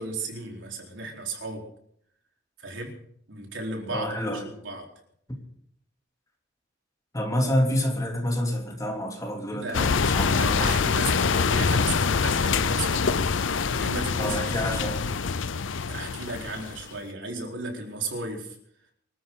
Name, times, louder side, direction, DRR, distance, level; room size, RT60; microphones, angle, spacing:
voice 1, 0.0-1.7 2.6-3.0 3.3-4.9 9.5-9.9 10.2-13.1 13.8-14.5 15.9-18.5, right 2 dB, 80° right, 1 dB, 4.2 m, -35 dB
voice 2, 3.9-4.5 5.3-5.4 7.1-10.7 14.2-15.0, equal, 20° left, 1 dB, 3.0 m, -28 dB
sound 1, 9.7-16.9, left 5 dB, 90° left, 0.7 m, -25 dB
25.5 x 13.5 x 3.9 m, 0.67 s
head